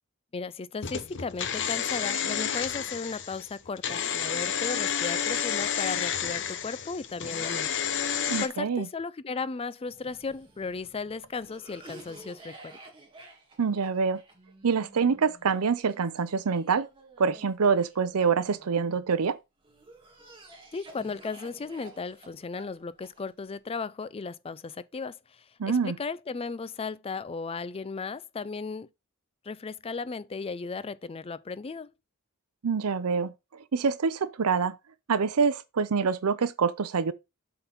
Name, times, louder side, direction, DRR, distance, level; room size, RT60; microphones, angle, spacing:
voice 1, 0.3-7.7 8.0-12.8 20.7-28.9 29.4-31.9, left 4 dB, 25° left, 0.4 m, -36 dB
sound 1, 0.8-8.5, left 8 dB, 55° left, 0.9 m, -30 dB
voice 2, 8.3-8.9 13.6-14.2 14.6-16.9 17.2-19.4 25.6-25.9 32.6-33.3 33.7-34.8 35.1-37.1, right 5 dB, 80° right, 0.6 m, -26 dB
Cough, 9.8-19.1 19.6-23.6, right 2 dB, 25° right, 2.1 m, -52 dB
7.9 x 3.8 x 5.8 m
head